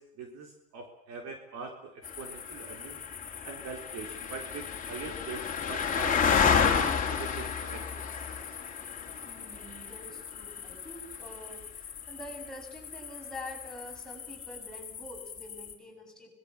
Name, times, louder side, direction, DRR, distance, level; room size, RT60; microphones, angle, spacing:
voice 1, 0.0-3.0 3.4-8.1, right 4 dB, 45° right, 4 dB, 3.8 m, -43 dB
sound 1, 2.0-15.7, left 6 dB, 20° left, 3.5 m, -32 dB
voice 2, 9.2-16.3, left 1 dB, ahead, -1 dB, 7.9 m, -46 dB
25.0 x 19.5 x 7.2 m, 0.76 s
hypercardioid pair, 110°, 38 cm